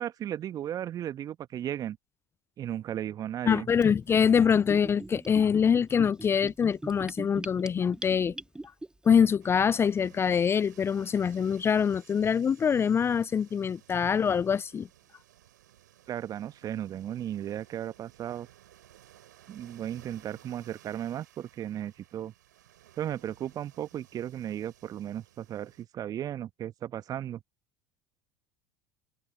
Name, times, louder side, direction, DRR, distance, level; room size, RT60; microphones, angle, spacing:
voice 1, 0.0-2.0 2.6-3.7 16.1-18.5 19.5-22.3 23.0-27.4, right 11 dB, 40° right, 1.4 m, -35 dB
voice 2, 3.4-8.4 9.0-14.9, left 7 dB, 25° left, 0.5 m, -24 dB
Gurgling / Bathtub (filling or washing), 3.8-8.9, right 2 dB, 10° right, 3.0 m, -41 dB
sound 1, 9.4-25.8, right 12 dB, 70° right, 6.6 m, -58 dB
figure-of-eight pair, 75°, 10 cm